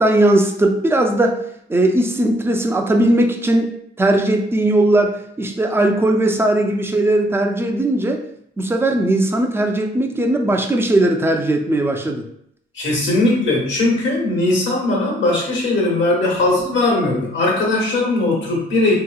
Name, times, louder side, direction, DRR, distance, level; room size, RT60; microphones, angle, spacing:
voice 1, 0.0-1.4 1.7-8.2 8.6-12.2, right 1 dB, 10° right, 4 dB, 0.4 m, -18 dB
voice 2, 12.7-19.0, left 2 dB, 70° left, -3 dB, 1.3 m, -19 dB
3.3 x 2.9 x 2.3 m, 0.72 s
cardioid pair, 90°, 20 cm